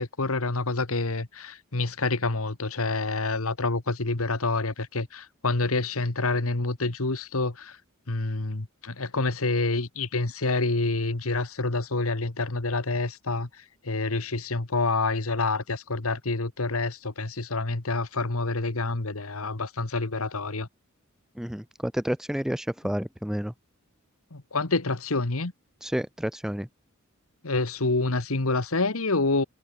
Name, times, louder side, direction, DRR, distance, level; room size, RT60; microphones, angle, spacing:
voice 1, 0.0-7.8 8.1-20.7 24.3-25.5 27.4-29.4, left 3 dB, 75° left, 1.7 m, -27 dB
voice 2, 21.4-23.5 25.8-26.7, equal, ahead, 0.4 m, -30 dB
head